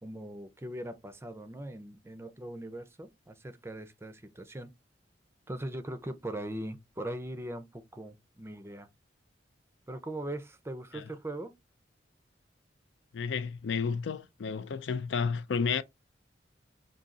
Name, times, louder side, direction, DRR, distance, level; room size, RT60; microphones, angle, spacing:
voice 1, 0.0-4.7 5.5-8.9 9.9-11.5, right 1 dB, 15° right, 0.5 m, -40 dB
voice 2, 13.1-15.8, left 5 dB, 70° left, 0.4 m, -31 dB
3.7 x 2.7 x 4.0 m
head